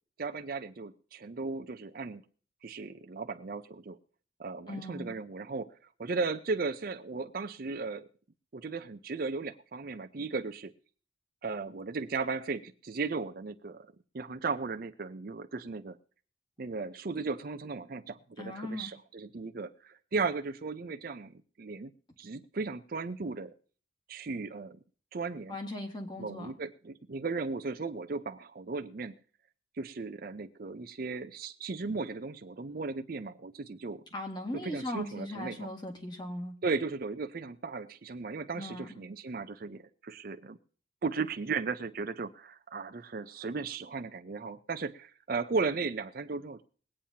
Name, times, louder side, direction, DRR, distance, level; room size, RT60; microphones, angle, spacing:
voice 1, 0.2-2.2 2.6-4.0 4.4-5.7 6.0-8.1 8.5-10.7 11.4-13.9 14.1-16.0 16.6-21.9 22.2-23.5 24.1-24.8 25.1-25.6 26.2-29.1 29.8-34.0 34.5-35.7 36.6-40.6 41.0-46.6, right 4 dB, 50° right, 8 dB, 0.5 m, -36 dB
voice 2, 4.7-5.1 18.4-18.9 25.5-26.5 34.1-36.5 38.6-38.9, left 1 dB, 20° left, 3 dB, 1.6 m, -38 dB
21.5 x 8.7 x 2.8 m, 0.43 s
head